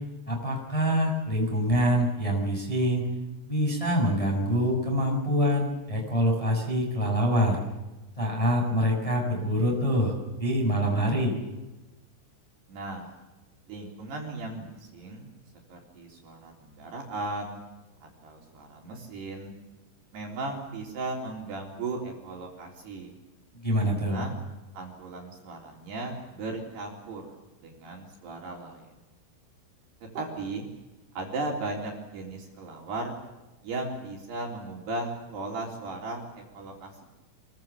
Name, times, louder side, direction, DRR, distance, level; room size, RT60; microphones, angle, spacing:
voice 1, 0.3-3.0 3.5-7.6 8.2-11.3 23.6-24.2, equal, 5° left, -1 dB, 6.3 m, -25 dB
voice 2, 12.7-13.1 13.7-15.3 15.7-17.6 18.0-19.5 20.1-23.2 23.8-24.4 24.7-27.3 27.6-28.9 30.1-30.7 31.2-33.2 33.6-37.0, right 2 dB, 55° right, 0 dB, 5.4 m, -36 dB
26.5 x 23.5 x 7.4 m, 1.1 s
omnidirectional pair, 6.0 m